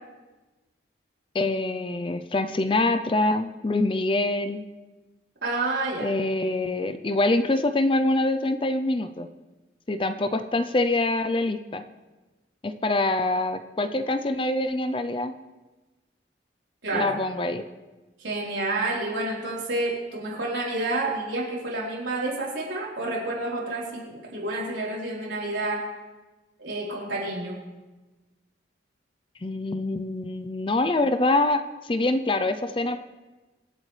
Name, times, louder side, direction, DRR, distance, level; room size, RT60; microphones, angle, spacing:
voice 1, 1.3-4.6 6.0-9.3 9.9-11.8 12.6-15.3 16.9-17.6 29.4-33.0, left 2 dB, 25° left, 9 dB, 0.5 m, -25 dB
voice 2, 5.4-6.1 16.8-17.1 18.2-25.8 26.6-27.6, right 2 dB, 75° right, -5 dB, 3.9 m, -29 dB
24.5 x 8.3 x 3.3 m, 1.2 s
head